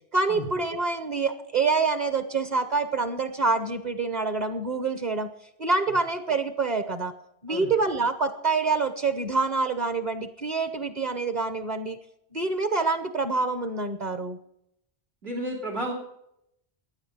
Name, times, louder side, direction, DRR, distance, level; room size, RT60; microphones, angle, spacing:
voice 1, 0.1-5.3 5.6-7.1 7.4-12.0 12.3-14.4, right 4 dB, 45° right, 9 dB, 1.0 m, -26 dB
voice 2, 15.2-15.9, right 1 dB, 85° right, 2 dB, 3.4 m, -32 dB
15.0 x 10.5 x 5.6 m, 0.77 s
omnidirectional pair, 1.0 m